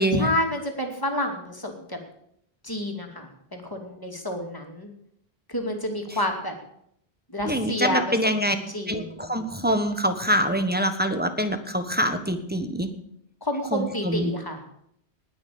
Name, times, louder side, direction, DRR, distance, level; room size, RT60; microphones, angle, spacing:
voice 1, 0.1-2.0 2.6-4.9 5.5-6.5 7.3-8.2 8.5-9.2 13.4-14.6, left 1 dB, 20° left, 2 dB, 2.5 m, -29 dB
voice 2, 7.5-8.6 8.9-12.9 13.7-14.3, equal, 10° right, 8 dB, 1.2 m, -25 dB
19.0 x 6.4 x 8.6 m, 0.73 s
omnidirectional pair, 1.1 m